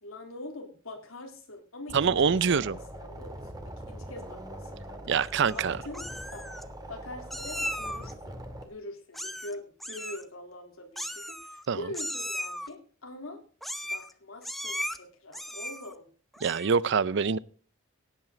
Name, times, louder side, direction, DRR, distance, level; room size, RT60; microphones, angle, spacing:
voice 1, 0.0-5.1 5.5-6.4 6.9-13.4 13.8-16.1, left 2 dB, 85° left, 3.6 m, -44 dB
sound 1, 1.9-8.7, right 1 dB, 20° right, 2.1 m, -42 dB
voice 2, 1.9-2.7 5.1-5.8 11.7-11.8 16.4-17.4, right 6 dB, 60° right, 0.5 m, -25 dB
Meow, 5.2-5.6 5.9-6.6 7.3-8.1 9.1-9.5 9.8-10.2 11.0-11.7 11.9-12.7 13.6-14.1 14.4-15.0 15.3-15.9 16.3-16.8, equal, ahead, 0.8 m, -36 dB
17.0 x 9.0 x 3.9 m
head